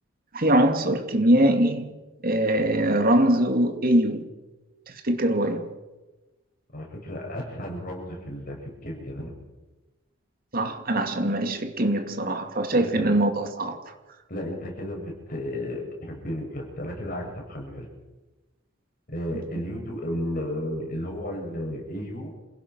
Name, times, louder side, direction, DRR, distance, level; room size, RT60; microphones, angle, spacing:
voice 1, 0.3-1.9 2.2-4.2 5.0-5.7 10.5-13.9, right 1 dB, 45° right, 2.4 m, -22 dB
voice 2, 6.7-9.3 12.7-13.1 14.3-17.9 19.1-22.3, equal, 45° left, 7.2 m, -33 dB
27.0 x 17.0 x 6.3 m
head